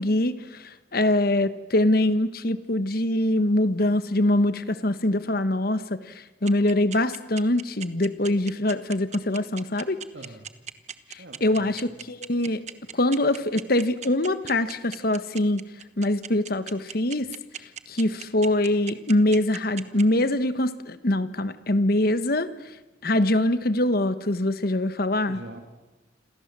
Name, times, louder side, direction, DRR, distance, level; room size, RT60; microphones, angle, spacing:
voice 1, 0.0-6.1 6.4-10.0 11.1-12.6 12.9-15.7 16.0-17.3 17.9-22.5 23.0-25.4, left 1 dB, 55° left, 12 dB, 1.3 m, -23 dB
sound 1, 6.5-20.2, right 8 dB, 40° right, 1.2 m, -37 dB
voice 2, 10.1-10.5 11.2-11.8 25.3-25.6, right 1 dB, 70° right, 4 dB, 2.8 m, -43 dB
27.5 x 27.5 x 7.6 m, 1.1 s
head